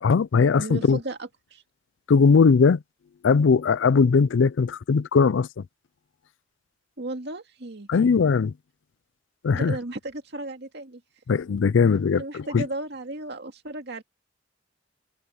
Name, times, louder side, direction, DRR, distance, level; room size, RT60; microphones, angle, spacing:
voice 1, 0.0-1.0 2.1-2.8 3.2-5.5 7.9-8.5 9.4-9.8 11.3-12.7, left 5 dB, 75° left, 0.4 m, -19 dB
voice 2, 0.6-1.6 7.0-7.9 9.5-11.0 12.2-14.0, right 2 dB, 60° right, 2.3 m, -35 dB
head